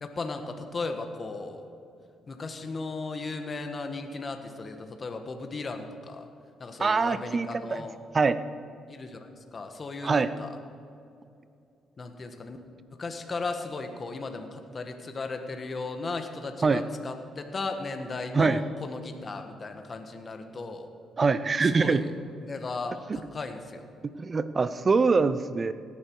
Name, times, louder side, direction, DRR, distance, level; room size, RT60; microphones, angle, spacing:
voice 1, 0.0-1.6 2.3-6.3 6.6-8.0 8.9-10.6 12.0-12.6 13.0-20.9 21.6-22.1 22.4-23.9, left 3 dB, 35° left, 5 dB, 1.5 m, -36 dB
voice 2, 6.8-7.8 8.1-8.4 10.0-10.3 16.6-16.8 18.3-18.6 21.2-22.0 23.1-23.2 24.0-25.7, right 4 dB, 35° right, 14 dB, 0.7 m, -24 dB
17.5 x 11.0 x 4.8 m, 2.6 s
cardioid pair, 90°, 0 cm